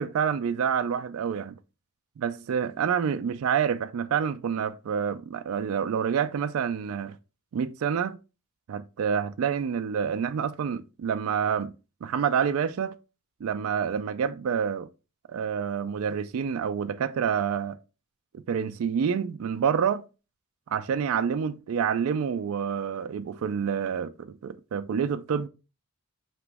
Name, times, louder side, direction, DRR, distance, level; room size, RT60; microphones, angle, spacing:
voice 1, 0.0-1.5 2.2-7.2 7.5-8.2 8.7-11.7 12.0-12.9 13.4-14.9 15.3-17.8 18.5-20.0 20.7-25.5, right 7 dB, 75° right, 0.3 m, -28 dB
4.9 x 2.9 x 3.4 m
head